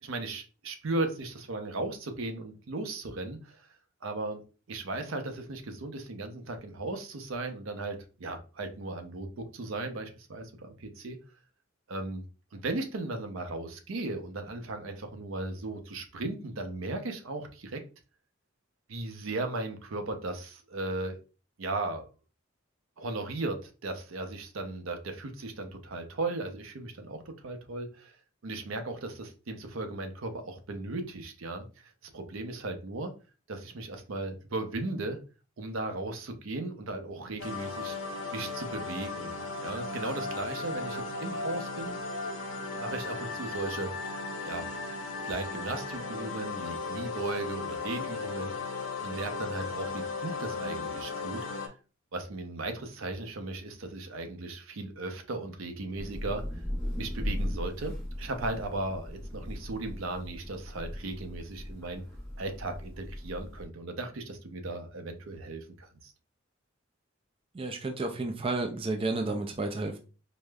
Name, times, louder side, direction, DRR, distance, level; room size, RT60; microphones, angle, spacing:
voice 1, 0.0-3.7 4.0-4.4 4.7-11.2 11.9-12.2 12.5-17.8 18.9-21.2 21.6-22.1 23.0-28.2 28.4-31.6 32.1-33.1 33.5-35.2 35.6-38.0 38.3-39.4 39.6-42.0 42.8-43.9 44.4-44.7 45.2-51.7 52.1-56.4 57.0-62.0 62.4-66.1, right 2 dB, 75° right, 6 dB, 0.6 m, -36 dB
sound 1, 37.4-51.7, left 4 dB, 80° left, 0.7 m, -36 dB
Thunder / Rain, 55.9-63.6, equal, 10° left, 0.9 m, -38 dB
voice 2, 67.5-70.0, right 2 dB, 30° right, 4 dB, 0.4 m, -31 dB
4.9 x 2.1 x 2.2 m, 0.35 s
head